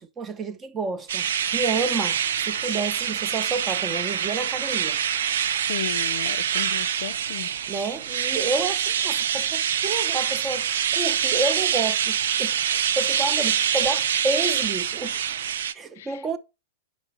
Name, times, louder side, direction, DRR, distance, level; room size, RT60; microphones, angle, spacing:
voice 1, 0.0-5.0 7.7-15.2 15.7-16.4, right 3 dB, 20° right, 0.8 m, -30 dB
sound 1, 1.1-15.7, right 8 dB, 70° right, 0.5 m, -25 dB
voice 2, 5.7-7.5 16.0-16.2, left 11 dB, 65° left, 0.4 m, -35 dB
5.4 x 4.5 x 5.6 m
hypercardioid pair, 110°, 0 cm